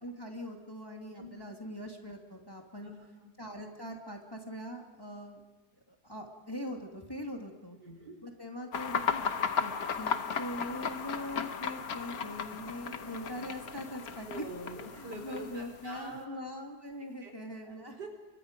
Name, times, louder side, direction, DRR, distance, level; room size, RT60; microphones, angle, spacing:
voice 1, 0.0-2.9 3.4-5.4 6.0-7.8 8.2-9.3 9.6-9.7 10.0-14.4 14.9-18.0, left 1 dB, 15° left, 1 dB, 2.1 m, -42 dB
voice 2, 7.8-8.2 12.1-12.2 12.8-13.1 14.3-16.5 17.2-17.3 17.6-18.1, right 2 dB, 85° right, 2 dB, 5.0 m, -45 dB
sound 1, 8.7-16.2, left 6 dB, 65° left, 1.5 m, -35 dB
29.0 x 24.5 x 5.2 m, 1.1 s
omnidirectional pair, 1.8 m